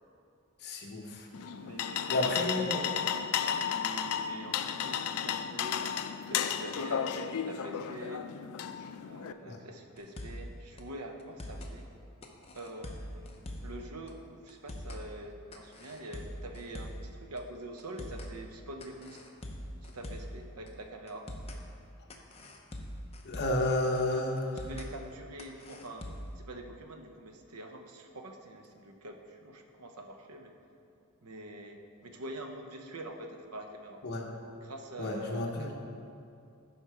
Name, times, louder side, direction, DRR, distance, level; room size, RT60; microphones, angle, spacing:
voice 1, 0.6-1.3 2.1-2.8 9.5-9.6 23.2-24.6 34.0-34.2 35.0-35.7, left 1 dB, 50° left, 0 dB, 1.0 m, -31 dB
sound 1, 1.3-9.3, left 8 dB, 70° left, 0.4 m, -33 dB
voice 2, 1.6-2.4 3.3-5.9 6.3-8.3 9.0-11.9 12.5-19.2 19.8-21.3 23.4-23.6 24.5-26.1 26.4-30.6 31.2-34.0 34.6-35.7, right 1 dB, 85° right, 5 dB, 0.8 m, -45 dB
sound 2, 10.0-10.5 10.8-10.9 11.2-11.7 12.2-13.8 14.1-14.2 14.5-15.0 15.5-17.1 17.4-17.5 17.8-18.3 18.8-20.4 20.7-20.8 21.1-21.6 22.1-23.7 23.9-24.0 24.4-24.9 25.4-26.4, equal, 25° left, 0.7 m, -42 dB
11.0 x 4.5 x 4.8 m, 2.5 s
head